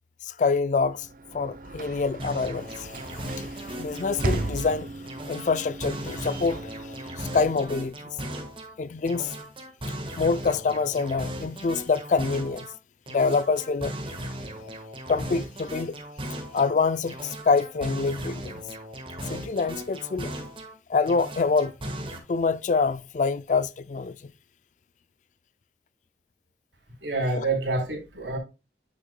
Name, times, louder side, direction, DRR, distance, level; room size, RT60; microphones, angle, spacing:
voice 1, 0.2-1.1 1.3-3.0 3.3-4.9 5.3-8.0 8.8-9.3 10.2-12.7 13.1-13.9 15.1-16.0 16.5-18.6 19.3-20.3 20.9-21.7 22.3-24.3 27.4-27.5, left 4 dB, 45° left, 0.4 m, -26 dB
Sliding door / Slam, 0.8-7.8, right 2 dB, 50° right, 0.5 m, -36 dB
sound 1, 2.2-4.7 5.1-8.7 9.1-12.7 13.1-16.7 17.1-20.7 21.1-22.2, right 1 dB, 30° right, 1.4 m, -37 dB
voice 2, 27.0-28.4, right 2 dB, 75° right, 3.2 m, -27 dB
9.8 x 6.1 x 2.2 m
head